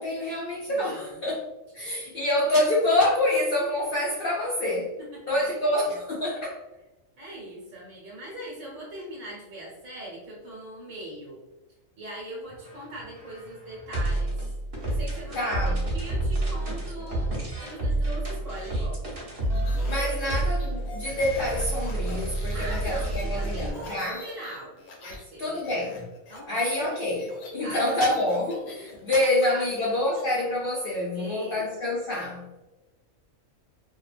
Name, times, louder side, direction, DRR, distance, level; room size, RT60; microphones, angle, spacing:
voice 1, 0.0-1.5 1.7-5.0 5.3-6.6 15.3-15.8 19.8-24.2 25.4-26.1 26.5-32.5, left 1 dB, 70° left, -4 dB, 0.5 m, -27 dB
voice 2, 0.7-1.2 5.1-5.6 7.2-11.4 12.0-14.5 14.8-17.3 17.6-19.1 22.4-25.8 26.3-26.9 27.6-27.8 28.7-30.0 31.1-31.7, right 1 dB, 75° right, -5 dB, 1.1 m, -41 dB
sound 1, 12.5-23.7, right 1 dB, 50° right, 0.9 m, -29 dB
sound 2, 19.4-25.2 25.5-30.2, left 2 dB, 90° left, 1.0 m, -44 dB
2.8 x 2.2 x 2.4 m, 1.1 s
omnidirectional pair, 1.4 m